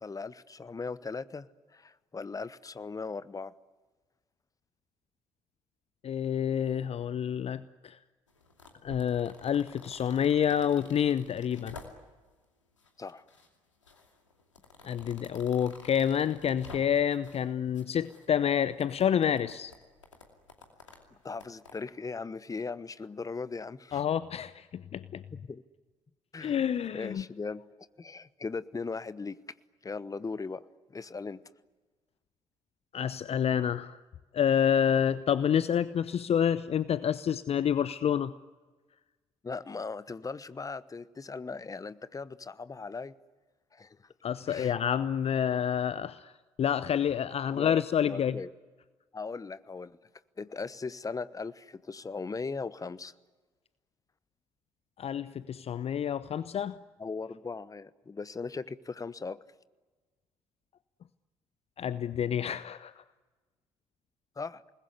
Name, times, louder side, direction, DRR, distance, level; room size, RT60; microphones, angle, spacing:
voice 1, 0.0-3.5 13.0-13.2 21.1-24.0 25.3-25.6 26.3-26.6 26.9-29.4 29.8-30.6 30.9-31.4 39.4-43.1 43.7-44.1 44.5-44.8 47.5-48.5 49.1-50.0 50.4-53.1 57.0-59.4 64.4-64.6, left 4 dB, 25° left, 1.1 m, -38 dB
voice 2, 6.0-8.0 8.8-11.8 14.8-19.7 23.9-25.2 26.4-27.2 32.9-34.0 34.3-38.3 44.2-46.3 46.6-48.4 55.0-56.8 61.8-63.0, left 8 dB, 40° left, 0.8 m, -28 dB
sound 1, 8.3-12.3 12.8-13.5 13.8-17.4 17.7-21.7, left 3 dB, 85° left, 2.6 m, -51 dB
28.0 x 20.5 x 9.7 m
figure-of-eight pair, 45°, 15 cm